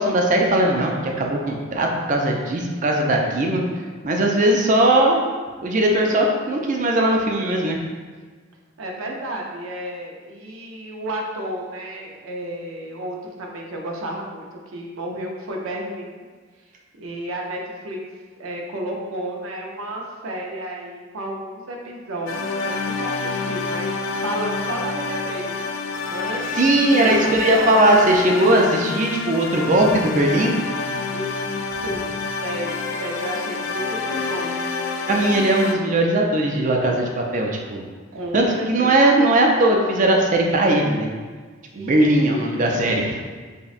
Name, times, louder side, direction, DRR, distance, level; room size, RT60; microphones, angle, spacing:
voice 1, 0.0-3.6 4.0-5.2 5.6-7.8 26.5-30.5 35.1-37.9 38.3-41.1 41.8-43.2, right 1 dB, 40° right, 0 dB, 0.4 m, -19 dB
voice 2, 8.8-16.3 16.9-18.0 18.4-23.9 24.2-25.6 26.1-28.9 31.1-34.6 38.1-39.1 41.7-42.0 42.3-42.5, right 1 dB, 90° right, 0 dB, 0.6 m, -32 dB
sound 1, 22.3-35.7, left 4 dB, 75° left, 0.3 m, -28 dB
5.2 x 2.2 x 2.4 m, 1.5 s
head